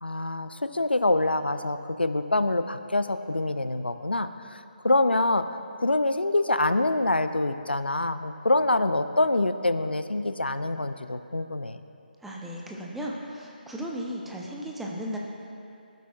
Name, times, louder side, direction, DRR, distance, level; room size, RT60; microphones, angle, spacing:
voice 1, 0.0-4.6 4.8-5.5 5.8-11.8, left 2 dB, 90° left, 10 dB, 0.4 m, -25 dB
voice 2, 12.2-15.2, equal, 5° right, -2 dB, 0.6 m, -35 dB
16.0 x 8.2 x 2.3 m, 2.6 s
figure-of-eight pair, 145°, 5 cm